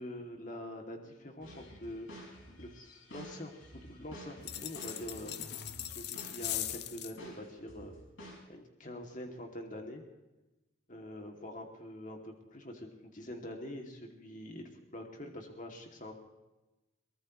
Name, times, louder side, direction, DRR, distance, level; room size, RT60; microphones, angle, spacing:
voice 1, 0.0-2.3 2.6-5.6 5.8-7.9 8.5-10.0 10.9-16.1, left 1 dB, 40° left, 2 dB, 2.5 m, -45 dB
sound 1, 1.4-6.8 7.2-8.4, equal, 70° left, 5.7 m, -51 dB
sound 2, 4.4-7.2, left 12 dB, 55° left, 0.8 m, -40 dB
23.5 x 19.0 x 3.2 m, 1.0 s
head